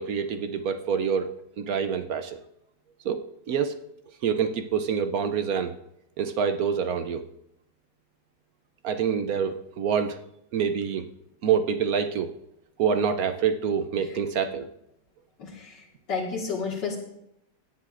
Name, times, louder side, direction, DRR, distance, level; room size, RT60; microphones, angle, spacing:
voice 1, 0.0-2.4 3.0-3.2 3.5-3.8 4.2-5.7 6.2-7.2 8.8-10.2 10.5-11.0 11.4-12.3 12.8-14.7, right 7 dB, 65° right, 8 dB, 1.0 m, -26 dB
voice 2, 15.4-15.8 16.1-17.0, left 5 dB, 85° left, -4 dB, 2.4 m, -31 dB
17.5 x 9.7 x 2.5 m, 0.80 s
omnidirectional pair, 1.9 m